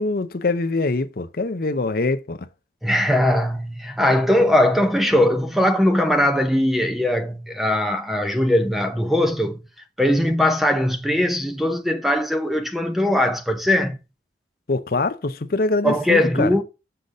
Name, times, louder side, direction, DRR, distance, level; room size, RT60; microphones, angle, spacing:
voice 1, 0.0-2.5 14.7-16.6, left 3 dB, 55° left, 0.6 m, -24 dB
voice 2, 2.8-9.6 10.0-14.0 15.8-16.6, left 1 dB, ahead, 0.7 m, -20 dB
6.7 x 4.0 x 6.3 m
head